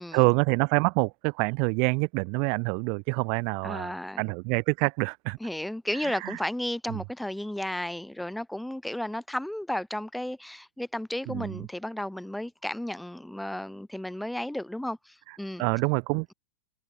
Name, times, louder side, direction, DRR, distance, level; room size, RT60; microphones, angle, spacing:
voice 1, 0.1-5.4 6.0-6.4 11.3-11.6 15.6-16.3, right 40 dB or more, 45° right, 4.5 m, -26 dB
voice 2, 3.6-4.2 5.4-15.6, left 1 dB, ahead, 4.2 m, -33 dB
figure-of-eight pair, 90°, 0 cm